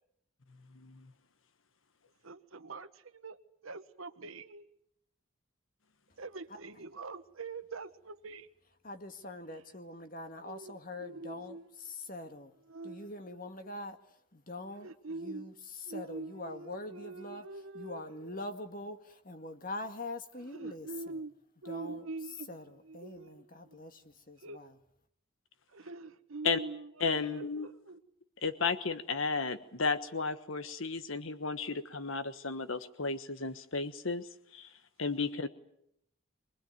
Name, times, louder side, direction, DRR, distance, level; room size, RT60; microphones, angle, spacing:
voice 1, 0.7-1.1 26.4-26.6 27.0-27.7 28.4-34.7 35.0-35.5, left 4 dB, 75° left, 1.4 m, -33 dB
voice 2, 2.2-3.4 3.6-4.7 6.2-8.5 10.4-11.7 12.7-13.4 14.8-15.5 15.8-18.4 20.5-21.3 21.6-23.8 24.4-24.6 25.7-28.0, right 3 dB, 85° right, 1.3 m, -44 dB
voice 3, 8.8-12.5 12.8-14.0 14.3-17.5 17.7-21.2 21.7-22.0 22.5-24.8, left 2 dB, 40° left, 1.9 m, -44 dB
24.0 x 20.0 x 9.2 m
head